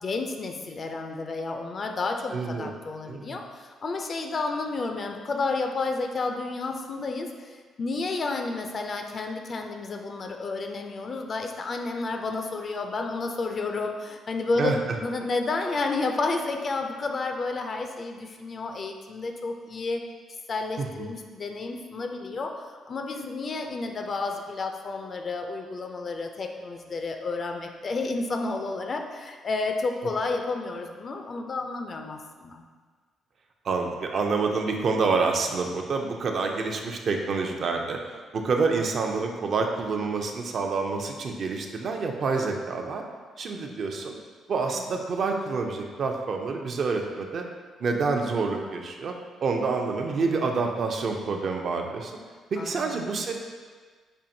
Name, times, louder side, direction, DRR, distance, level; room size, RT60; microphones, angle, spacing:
voice 1, 0.0-20.0 20.5-22.5 22.9-32.6 43.6-43.7 44.7-44.8 52.6-53.0, left 3 dB, 45° left, 4 dB, 0.4 m, -31 dB
voice 2, 2.3-2.7 3.1-3.4 14.6-14.8 20.8-21.1 33.6-38.0 38.3-43.0 43.4-44.2 44.5-47.4 47.8-49.1 49.4-52.2 52.5-53.3, right 4 dB, 55° right, 2 dB, 0.4 m, -27 dB
5.4 x 2.5 x 2.7 m, 1.5 s
cardioid pair, 90°, 0 cm